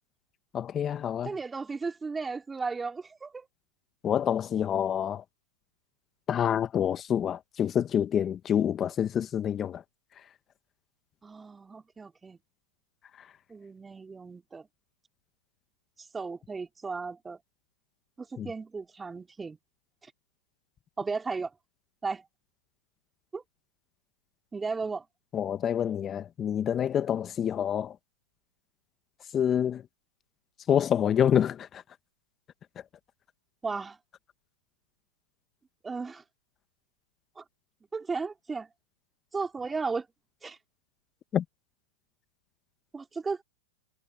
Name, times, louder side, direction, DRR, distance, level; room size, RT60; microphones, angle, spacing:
voice 1, 0.5-1.3 4.0-5.2 6.3-9.8 18.4-18.5 25.3-27.9 29.3-29.8 30.7-31.8 41.3-41.4, left 9 dB, 25° left, 1.3 m, -27 dB
voice 2, 1.2-3.5 11.2-12.4 13.5-14.7 16.0-17.4 18.2-19.6 20.0-20.1 21.0-21.5 22.0-22.2 23.3-23.4 24.5-25.1 33.6-34.0 35.8-36.2 37.4-37.5 37.9-38.7 39.3-40.1 40.4-40.6 42.9-43.4, right 4 dB, 15° right, 4.3 m, -35 dB
hypercardioid pair, 120°, 0 cm